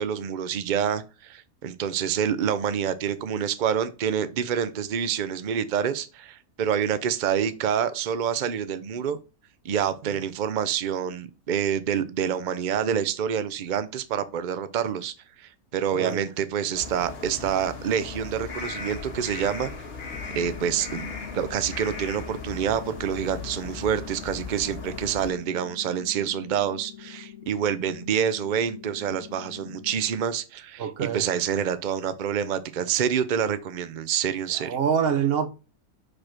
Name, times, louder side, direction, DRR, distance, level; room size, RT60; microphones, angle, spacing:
voice 1, 0.0-9.2 9.6-19.7 20.3-21.1 21.3-34.8, right 8 dB, 80° right, 0.4 m, -27 dB
voice 2, 15.9-16.3 30.8-31.3 34.5-35.5, right 7 dB, 50° right, 0.8 m, -25 dB
sound 1, 16.7-25.3, left 4 dB, 45° left, 1.5 m, -37 dB
sound 2, 20.1-30.1, left 11 dB, 75° left, 1.0 m, -45 dB
5.1 x 4.3 x 5.9 m
omnidirectional pair, 1.5 m